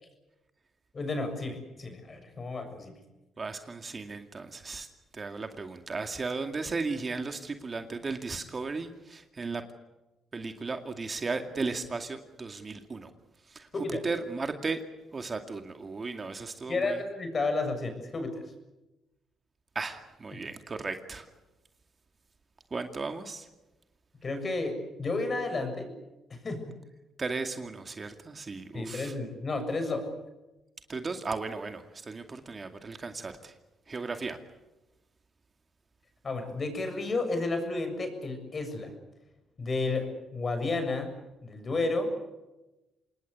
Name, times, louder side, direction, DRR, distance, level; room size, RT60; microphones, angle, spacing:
voice 1, 0.9-3.0 13.7-14.0 16.7-18.4 24.2-25.9 26.3-26.6 28.7-30.0 36.2-38.9 39.6-40.0 40.3-41.1 41.4-42.1, left 3 dB, 35° left, 7 dB, 7.0 m, -32 dB
voice 2, 3.4-4.9 5.1-9.6 10.3-13.1 13.5-13.7 14.0-14.8 15.1-17.0 19.7-21.3 22.7-23.5 27.2-29.1 30.9-33.5 33.9-34.4, right 4 dB, 35° right, 6 dB, 2.3 m, -35 dB
27.0 x 20.0 x 8.3 m, 1.0 s
cardioid pair, 90°, 0 cm